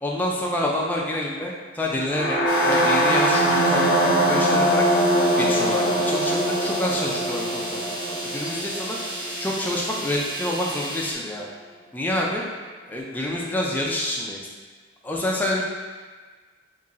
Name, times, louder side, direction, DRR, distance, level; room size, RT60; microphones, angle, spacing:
voice 1, 0.0-4.9 5.4-7.8 8.1-9.0 9.4-11.5 11.9-12.4 12.9-14.4 15.0-15.6, left 1 dB, 10° left, -3 dB, 0.4 m, -27 dB
sound 1, 2.1-10.0, equal, 50° left, 0.6 m, -22 dB
sound 2, 2.5-11.1, right 1 dB, 55° right, 0.7 m, -34 dB
3.0 x 2.8 x 3.7 m, 1.5 s
head